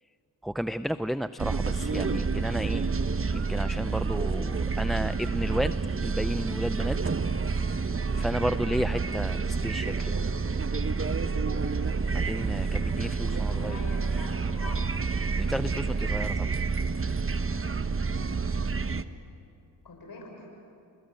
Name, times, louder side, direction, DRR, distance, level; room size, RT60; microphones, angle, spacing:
voice 1, 0.4-2.9 3.3-7.0 7.6-7.9 8.2-10.1 12.1-13.8 15.4-16.5, equal, ahead, 13 dB, 0.6 m, -32 dB
sound 1, 1.4-19.0, right 4 dB, 30° right, 1.1 m, -28 dB
voice 2, 13.3-14.8 19.8-20.5, left 2 dB, 60° left, 1 dB, 6.6 m, -43 dB
28.0 x 20.0 x 9.1 m, 2.5 s
supercardioid pair, 50°, 41 cm